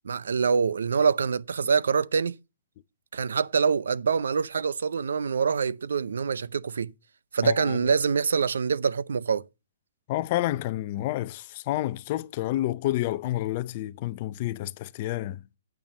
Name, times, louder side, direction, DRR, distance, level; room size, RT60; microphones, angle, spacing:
voice 1, 0.0-2.3 3.1-6.9 7.3-9.4, right 5 dB, 80° right, 0.6 m, -25 dB
voice 2, 7.4-7.8 10.1-15.4, left 15 dB, 25° left, 0.5 m, -29 dB
9.0 x 8.8 x 5.4 m
hypercardioid pair, 180°, 0 cm